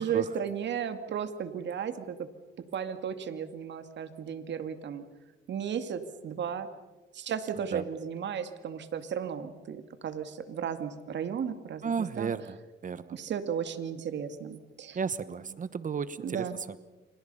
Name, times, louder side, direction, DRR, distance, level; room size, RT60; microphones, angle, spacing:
voice 1, 0.0-2.3 2.6-5.0 5.5-6.7 7.1-11.9 12.2-12.3 13.1-15.0 16.2-16.6, right 8 dB, 65° right, 9 dB, 2.4 m, -34 dB
voice 2, 11.8-12.6 12.8-13.2 14.9-16.8, right 6 dB, 40° right, 15 dB, 1.1 m, -33 dB
29.5 x 27.0 x 5.7 m, 1.2 s
cardioid pair, 90°, 20 cm